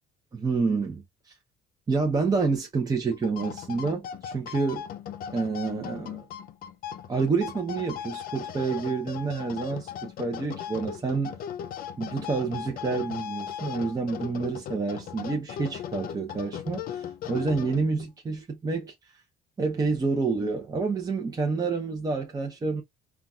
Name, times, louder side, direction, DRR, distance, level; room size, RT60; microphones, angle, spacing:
voice 1, 0.3-1.3 1.9-4.9 5.3-6.3 7.1-11.4 12.0-18.9 19.6-22.8, right 4 dB, 20° right, 0.7 m, -28 dB
sound 1, 3.1-18.1, left 9 dB, 60° left, 0.5 m, -38 dB
3.9 x 2.3 x 2.3 m
cardioid pair, 110°, 17 cm